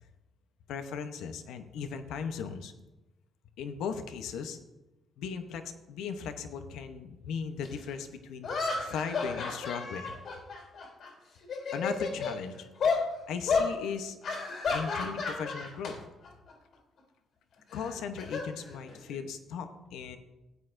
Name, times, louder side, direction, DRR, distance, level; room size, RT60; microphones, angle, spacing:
voice 1, 0.7-2.7 3.6-4.6 5.2-8.5 8.8-10.1 11.7-12.7 13.3-14.2 14.7-16.0 17.7-20.2, left 6 dB, 85° left, 8 dB, 0.8 m, -37 dB
sound 1, 7.6-7.7 8.4-11.1 11.4-12.4 12.8-13.0 13.5-13.7 14.2-15.9 16.2-16.5 17.7-19.2, left 4 dB, 70° left, 3.4 m, -32 dB
15.5 x 8.6 x 2.6 m, 1.0 s
cardioid pair, 90°, 0 cm